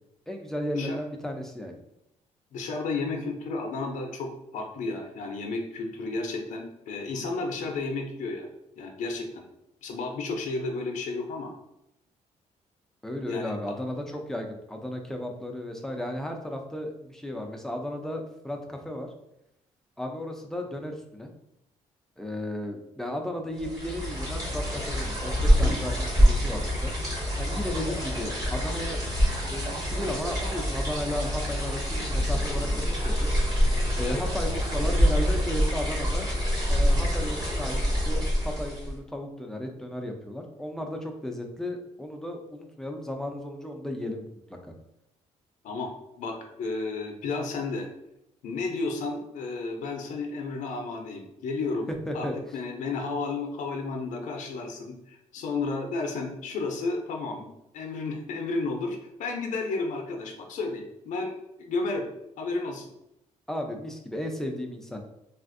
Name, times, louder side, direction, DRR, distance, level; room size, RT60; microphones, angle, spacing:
voice 1, 0.3-1.8 13.0-19.1 20.0-21.3 22.2-26.9 27.4-29.0 29.5-33.3 34.0-36.3 36.6-44.7 51.9-52.4 63.5-65.0, left 1 dB, 5° left, 2 dB, 0.4 m, -34 dB
voice 2, 2.5-8.5 8.8-9.4 9.8-11.5 13.3-13.5 34.0-34.2 45.6-47.9 48.4-57.5 57.7-61.3 61.6-62.1 62.4-62.9, left 3 dB, 75° left, 3 dB, 0.5 m, -32 dB
sound 1, 23.6-39.0, equal, 30° right, 1.2 m, -26 dB
3.3 x 2.4 x 2.5 m, 0.84 s
cardioid pair, 135°, 13 cm